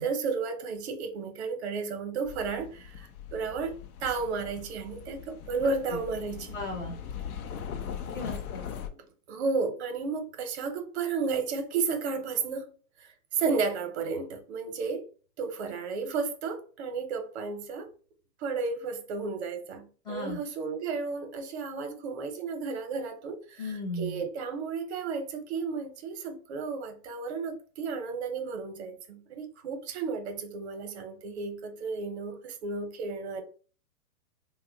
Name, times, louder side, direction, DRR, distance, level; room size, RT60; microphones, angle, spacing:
voice 1, 0.0-3.7 4.0-6.6 8.9-12.7 13.0-13.1 13.4-15.0 15.4-17.9 18.4-33.4, right 4 dB, 45° right, 0.7 m, -33 dB
sound 1, 2.2-8.9, left 8 dB, 70° left, 0.6 m, -40 dB
voice 2, 6.5-7.0 8.1-8.7 20.0-20.4 23.6-24.2, left 2 dB, 10° left, 0.6 m, -36 dB
2.7 x 2.1 x 3.7 m
hypercardioid pair, 145°, 45 cm